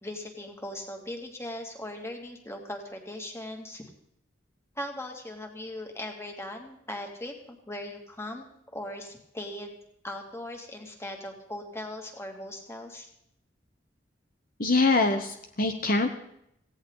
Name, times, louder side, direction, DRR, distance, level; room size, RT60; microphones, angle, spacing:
voice 1, 0.0-3.8 4.8-9.8 10.0-13.1, left 1 dB, 15° left, 2 dB, 2.5 m, -39 dB
voice 2, 14.6-16.1, left 3 dB, 50° left, 5 dB, 1.2 m, -24 dB
17.0 x 17.0 x 4.1 m, 0.75 s
head